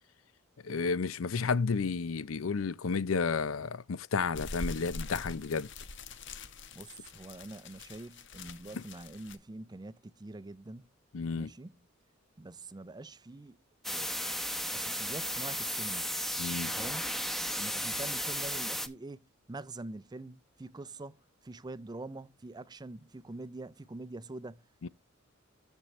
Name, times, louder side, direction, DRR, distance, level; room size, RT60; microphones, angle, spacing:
voice 1, 0.6-5.7 8.8-8.9 11.1-11.5 16.4-16.7 24.8-24.9, left 5 dB, 85° left, 0.6 m, -32 dB
sound 1, 4.3-9.4, left 2 dB, 65° left, 1.1 m, -44 dB
voice 2, 6.7-10.9 11.3-11.8 12.4-13.6 13.9-14.1 14.7-16.1 16.7-17.0 17.6-21.2 21.4-24.9, right 2 dB, 20° right, 0.5 m, -45 dB
sound 2, 13.8-18.9, equal, ahead, 0.8 m, -34 dB
13.5 x 4.5 x 3.1 m
head